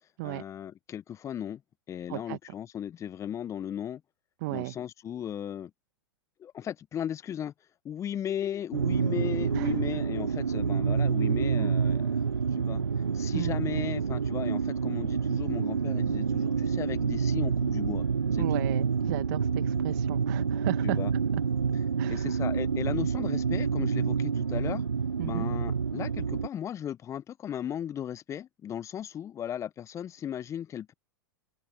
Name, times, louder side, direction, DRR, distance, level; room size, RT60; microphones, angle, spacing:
voice 1, 0.2-1.6 1.9-4.0 4.5-5.7 6.4-7.5 7.8-12.8 13.1-18.0 18.3-18.6 20.8-21.1 22.1-24.8 25.2-30.9, left 9 dB, 25° left, 1.2 m, -36 dB
voice 2, 4.4-4.7 9.5-9.7 11.5-11.7 13.3-13.5 18.4-21.0 22.0-22.3 25.2-25.5, right 23 dB, 50° right, 2.3 m, -35 dB
sound 1, 8.7-26.5, right 6 dB, 85° right, 0.5 m, -28 dB
figure-of-eight pair, 100°, 13 cm